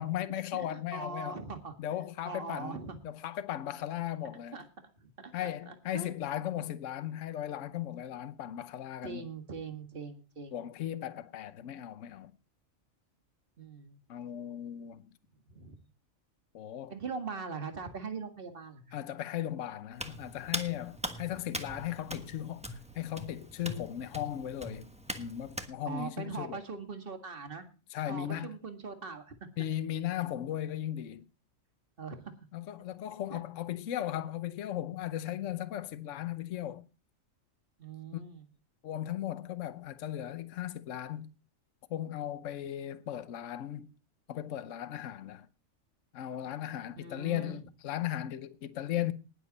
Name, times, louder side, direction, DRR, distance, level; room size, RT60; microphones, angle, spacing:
voice 1, 0.0-1.4 1.8-4.6 5.3-9.3 10.5-12.3 14.1-15.0 16.5-16.9 18.9-24.9 25.2-26.6 27.9-28.6 29.6-31.2 32.5-36.8 38.1-38.2 38.8-41.3 41.9-43.9 44.3-45.5 46.1-49.1, left 12 dB, 65° left, 1.1 m, -37 dB
voice 2, 0.5-1.7 2.2-3.0 4.5-4.7 5.0-6.1 9.0-10.5 13.6-14.0 15.6-15.8 16.9-19.0 25.8-27.7 28.1-29.3 32.0-32.3 33.3-33.4 37.8-38.4 47.0-47.6, right 5 dB, 40° right, 2.0 m, -41 dB
Hands, 20.0-25.7, equal, 5° right, 1.2 m, -41 dB
19.5 x 7.6 x 4.1 m
omnidirectional pair, 1.4 m